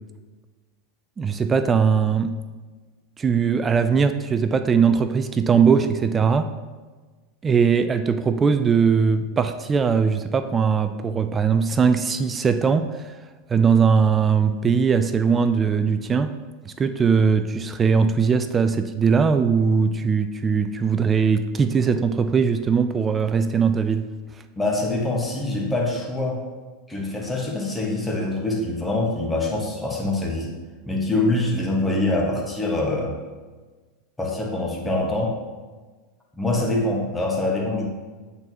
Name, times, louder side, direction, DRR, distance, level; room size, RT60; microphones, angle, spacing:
voice 1, 1.2-2.4 3.2-6.5 7.4-13.2 13.5-16.4 16.6-24.1, right 6 dB, 20° right, 10 dB, 0.3 m, -20 dB
voice 2, 24.6-26.4 26.9-30.5 30.9-33.1 34.2-35.3 36.3-37.9, left 2 dB, 10° left, -2 dB, 1.3 m, -24 dB
8.7 x 4.0 x 2.9 m, 1.3 s
figure-of-eight pair, 85°, 0 cm